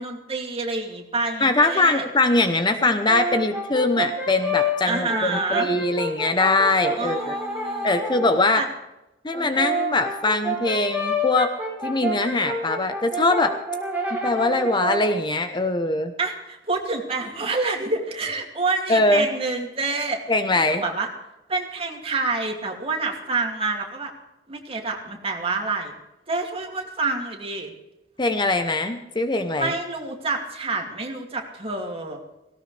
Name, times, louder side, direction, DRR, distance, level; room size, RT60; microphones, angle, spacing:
voice 1, 0.0-2.1 4.8-5.7 6.9-8.0 8.5-8.7 16.2-20.2 20.5-21.1 21.5-24.1 24.5-25.9 26.3-27.7 29.6-32.2, right 3 dB, 35° right, 1 dB, 2.6 m, -28 dB
voice 2, 1.4-7.4 7.8-8.6 9.2-11.5 11.8-13.6 14.2-16.1 18.9-19.3 20.3-20.8 28.2-29.7, left 2 dB, 25° left, 8 dB, 0.9 m, -22 dB
Brass instrument, 2.8-8.4 9.3-15.2, equal, 10° right, 3.8 m, -29 dB
18.0 x 17.0 x 3.4 m, 0.93 s
head